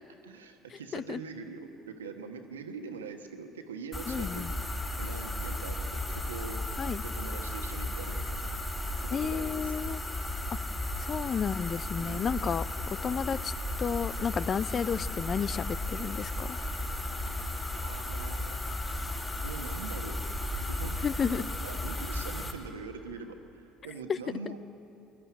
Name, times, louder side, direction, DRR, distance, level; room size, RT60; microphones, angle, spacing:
voice 1, 0.2-4.6 5.0-6.6 7.0-8.2 9.1-9.9 12.0-12.4 16.8-16.9 17.8-18.6 19.4-20.2 20.7-21.0 21.3-24.6, right 5 dB, 90° right, 5 dB, 1.4 m, -43 dB
sound 1, 3.9-22.5, left 1 dB, 20° left, 3.2 m, -35 dB
voice 2, 4.1-4.5 6.8-7.0 9.1-10.0 11.0-12.6 13.0-13.5 13.8-16.6 21.0-21.4 24.1-24.2, left 7 dB, 40° left, 18 dB, 0.5 m, -32 dB
22.0 x 12.0 x 9.9 m, 2.8 s
hypercardioid pair, 60°, 0 cm